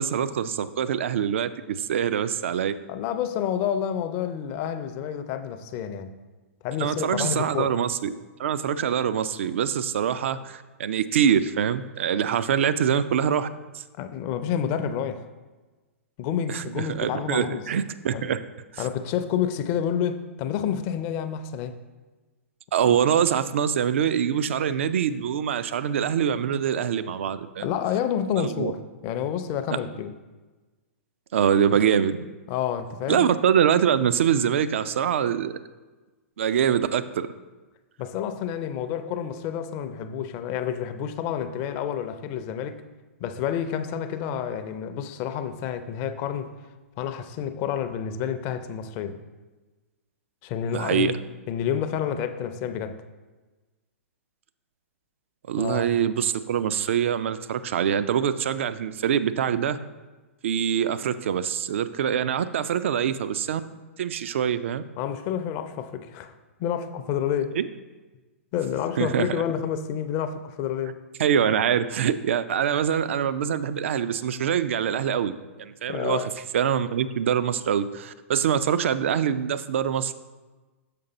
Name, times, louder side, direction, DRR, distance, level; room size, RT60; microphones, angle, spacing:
voice 1, 0.0-2.8 6.8-8.1 8.4-13.5 13.7-13.8 16.5-18.4 18.7-18.9 22.7-27.7 28.3-28.7 31.3-32.3 33.1-35.6 36.4-37.3 50.7-51.1 55.5-59.8 60.4-63.6 64.0-64.8 67.5-67.7 69.0-69.4 71.2-75.3 75.6-80.1, right 8 dB, 60° right, 13 dB, 0.4 m, -24 dB
voice 2, 2.9-6.2 6.6-7.8 14.0-15.2 16.2-17.6 18.1-18.3 18.8-21.8 27.6-28.8 29.0-30.1 32.5-33.3 38.0-42.8 43.2-46.5 47.0-49.2 50.4-51.1 51.5-53.0 55.6-56.1 65.0-66.3 66.6-67.6 68.5-71.0 75.9-76.3, left 9 dB, 35° left, 10 dB, 0.5 m, -29 dB
6.8 x 5.1 x 3.9 m, 1.2 s
figure-of-eight pair, 110°, 8 cm